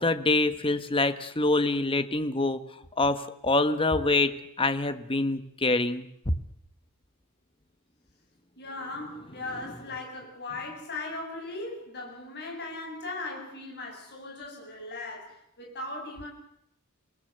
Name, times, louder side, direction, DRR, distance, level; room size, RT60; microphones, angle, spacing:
voice 1, 0.0-2.6 3.0-4.3 4.6-6.3, left 2 dB, 25° left, 1.4 m, -25 dB
voice 2, 8.6-16.3, left 2 dB, 50° left, 7.6 m, -38 dB
27.0 x 18.5 x 8.0 m
head